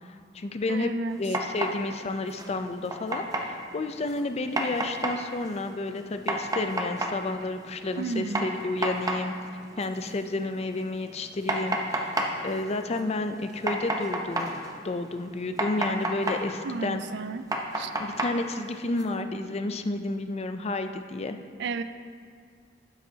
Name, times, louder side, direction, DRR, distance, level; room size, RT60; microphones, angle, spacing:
voice 1, 0.0-0.9 1.2-9.3 9.8-14.5 14.8-17.0 18.0-21.4, left 2 dB, 35° left, 8 dB, 0.4 m, -31 dB
voice 2, 0.7-1.2 8.0-8.5 16.6-17.4 17.7-17.9 21.6-21.8, right 4 dB, 60° right, 11 dB, 0.4 m, -32 dB
sound 1, 1.1-19.0, right 1 dB, 20° right, 0.8 m, -34 dB
12.5 x 8.8 x 2.8 m, 2.1 s
head